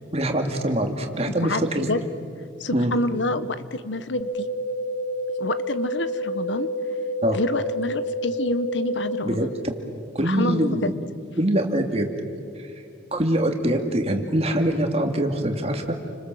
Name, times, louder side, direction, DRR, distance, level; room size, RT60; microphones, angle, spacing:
voice 1, 0.1-1.9 2.7-2.9 7.2-7.4 9.2-9.5 10.1-10.9 11.4-12.1 12.6-12.7 13.1-16.0, right 1 dB, 30° right, 4 dB, 2.5 m, -23 dB
voice 2, 1.4-2.0 2.6-4.5 5.4-6.7 7.3-9.5 10.2-10.9, left 2 dB, 70° left, 13 dB, 1.1 m, -27 dB
sound 1, 4.2-9.2, equal, 25° left, 2.6 m, -28 dB
30.0 x 25.5 x 7.8 m, 2.5 s
head